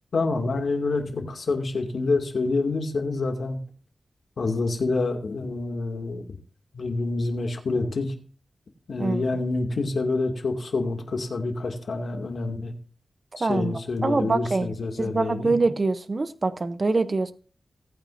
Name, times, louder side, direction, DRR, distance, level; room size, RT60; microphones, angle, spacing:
voice 1, 0.1-3.6 4.4-6.3 6.7-8.1 8.9-12.7 13.4-15.6, left 3 dB, 65° left, 3 dB, 2.2 m, -27 dB
voice 2, 13.4-13.7 14.0-14.7 15.0-17.3, right 3 dB, 35° right, 11 dB, 0.7 m, -24 dB
19.0 x 9.1 x 2.6 m, 0.40 s
wide cardioid pair, 110°, 0 cm